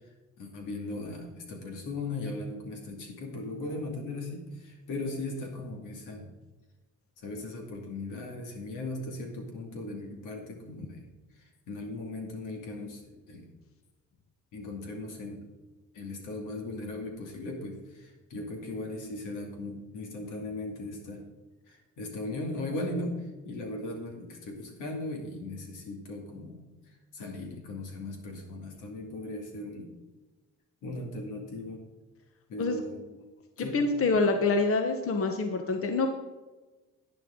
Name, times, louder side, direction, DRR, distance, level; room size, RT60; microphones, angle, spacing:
voice 1, 0.4-6.3 7.2-11.1 11.7-13.5 14.5-15.5 15.9-21.2 21.7-23.2 23.4-26.6 27.1-29.9 30.8-31.8 32.5-33.0 33.6-33.8, left 2 dB, 85° left, 2 dB, 2.4 m, -38 dB
voice 2, 33.6-36.1, left 3 dB, 45° left, 5 dB, 1.1 m, -26 dB
11.0 x 9.7 x 3.8 m, 1.2 s
cardioid pair, 90°, 30 cm